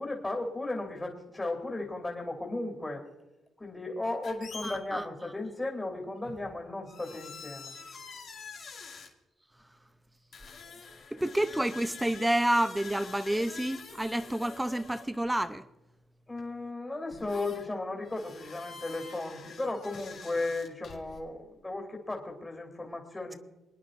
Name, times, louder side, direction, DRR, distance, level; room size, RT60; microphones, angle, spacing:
voice 1, 0.0-3.0 3.6-7.7 10.6-11.1 16.3-23.4, left 2 dB, 20° left, 2.8 m, -35 dB
sound 1, 4.2-4.8 6.2-6.5 6.8-9.1 10.3-15.2 16.4-16.5 17.1-17.7 18.0-21.2, left 5 dB, 65° left, 2.4 m, -46 dB
voice 2, 4.6-5.1 11.1-15.6, right 1 dB, 10° right, 0.6 m, -29 dB
28.0 x 10.0 x 2.6 m
cardioid pair, 85°, 0 cm